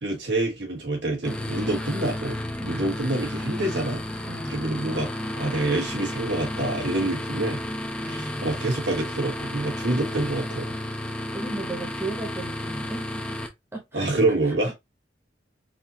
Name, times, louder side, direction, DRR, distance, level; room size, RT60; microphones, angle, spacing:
voice 1, 0.0-2.4 2.7-4.2 4.5-7.6 8.0-10.7 13.9-14.7, right 2 dB, 80° right, 1.7 m, -27 dB
sound 1, 1.2-13.5, left 1 dB, 5° left, 0.5 m, -32 dB
voice 2, 4.2-4.6 8.0-8.6 11.3-13.3 13.7-14.2 14.4-14.7, right 2 dB, 15° right, 1.0 m, -36 dB
4.2 x 2.7 x 2.7 m
head